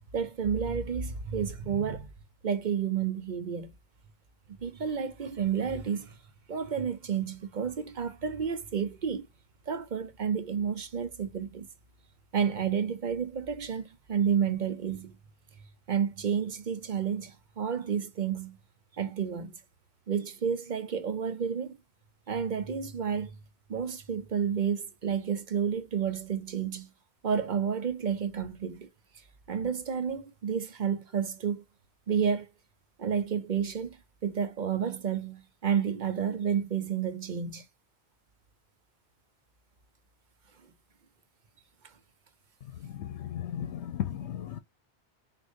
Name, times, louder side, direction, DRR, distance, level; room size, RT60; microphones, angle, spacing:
voice 1, 0.1-2.1 2.4-3.7 4.6-6.2 6.5-9.3 9.7-11.7 12.3-15.2 15.9-18.6 19.0-19.6 20.1-21.8 22.3-23.4 23.7-26.9 27.2-28.9 29.5-31.6 32.1-32.5 33.0-34.0 34.2-37.6, right 7 dB, 50° right, 0.7 m, -30 dB
voice 2, 42.6-44.6, left 10 dB, 90° left, 0.9 m, -36 dB
6.2 x 2.6 x 2.6 m
omnidirectional pair, 1.1 m